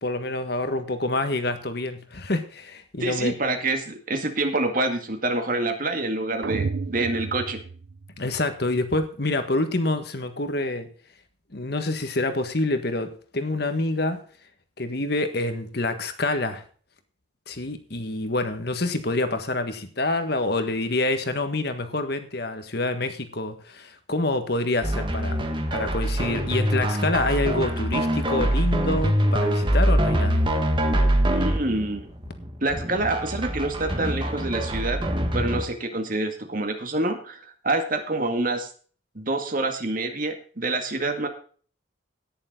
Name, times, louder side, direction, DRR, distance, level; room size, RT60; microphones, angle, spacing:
voice 1, 0.0-3.3 8.2-10.9 11.5-14.2 14.8-16.6 17.5-30.4, left 2 dB, 55° left, 8 dB, 1.6 m, -27 dB
voice 2, 3.0-7.6 31.3-32.0 32.6-35.0 35.3-37.4 37.6-38.7 39.2-41.3, right 2 dB, 45° right, 5 dB, 2.1 m, -27 dB
sound 1, 6.4-8.6, right 4 dB, 60° right, 0.5 m, -32 dB
sound 2, 24.8-35.6, right 1 dB, 25° right, 1.5 m, -24 dB
17.5 x 7.1 x 3.8 m, 0.43 s
head